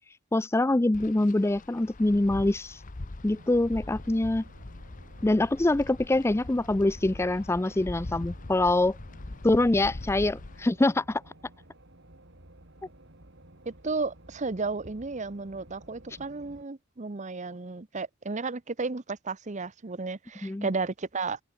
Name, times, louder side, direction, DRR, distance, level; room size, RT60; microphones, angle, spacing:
voice 1, 0.3-2.8 3.2-4.4 5.2-9.0 9.4-11.2 20.4-20.7, left 2 dB, 15° left, 0.4 m, -24 dB
Wind, 0.9-10.7, left 2 dB, 40° left, 0.8 m, -42 dB
sound 1, 3.3-16.6, right 1 dB, 60° right, 4.4 m, -53 dB
voice 2, 13.7-21.4, right 3 dB, 35° right, 0.8 m, -33 dB
head